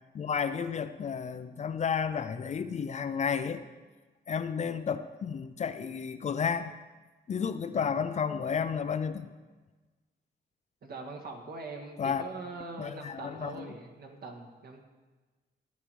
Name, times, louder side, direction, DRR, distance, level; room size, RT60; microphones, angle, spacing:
voice 1, 0.1-3.6 4.3-6.7 7.3-9.3 12.0-12.2 12.8-13.7, left 6 dB, 40° left, 10 dB, 0.5 m, -32 dB
voice 2, 10.8-14.8, right 3 dB, 55° right, 3 dB, 1.9 m, -42 dB
14.5 x 10.5 x 4.7 m, 1.3 s
wide cardioid pair, 160°, 18 cm